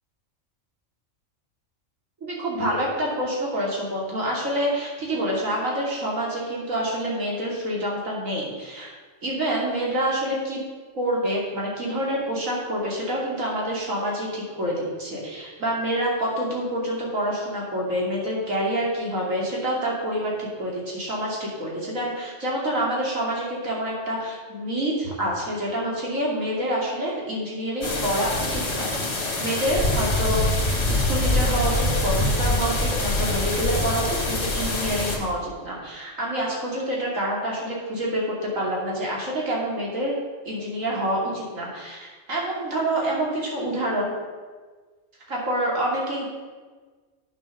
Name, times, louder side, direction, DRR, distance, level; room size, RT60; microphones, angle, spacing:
voice 1, 2.2-8.9 9.2-10.6 10.9-40.1 40.4-44.1 45.3-46.3, right 1 dB, 85° right, -3 dB, 3.1 m, -27 dB
sound 1, 27.8-35.2, left 1 dB, 55° left, 2.0 m, -24 dB
9.0 x 7.2 x 6.5 m, 1.4 s
omnidirectional pair, 1.3 m